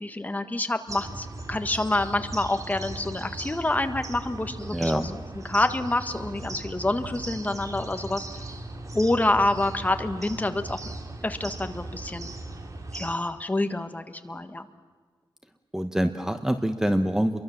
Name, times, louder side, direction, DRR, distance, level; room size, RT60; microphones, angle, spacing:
voice 1, 0.0-5.0 5.4-8.2 8.9-10.8 11.2-12.3 12.9-14.7, left 2 dB, 20° left, 8 dB, 1.6 m, -27 dB
sound 1, 0.9-13.2, right 2 dB, 40° right, 2.5 m, -38 dB
voice 2, 4.7-5.1 15.7-17.4, equal, 5° right, 8 dB, 1.0 m, -25 dB
30.0 x 23.0 x 7.3 m, 1.5 s
wide cardioid pair, 130°, 9 cm